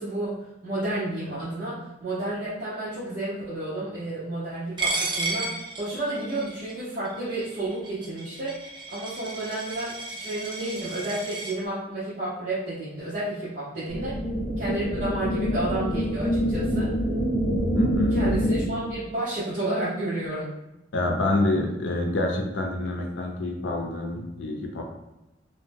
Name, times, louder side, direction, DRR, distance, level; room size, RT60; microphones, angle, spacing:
voice 1, 0.0-8.5 8.9-14.1 14.6-16.9 18.1-20.5, right 1 dB, 45° right, -12 dB, 0.9 m, -31 dB
Coin (dropping), 4.8-11.5, right 3 dB, 25° right, 0.5 m, -33 dB
sound 1, 13.9-18.9, equal, 15° left, 0.9 m, -25 dB
voice 2, 17.7-18.2 20.9-24.8, left 2 dB, 80° left, 1 dB, 0.6 m, -27 dB
2.7 x 2.1 x 3.3 m, 0.95 s
head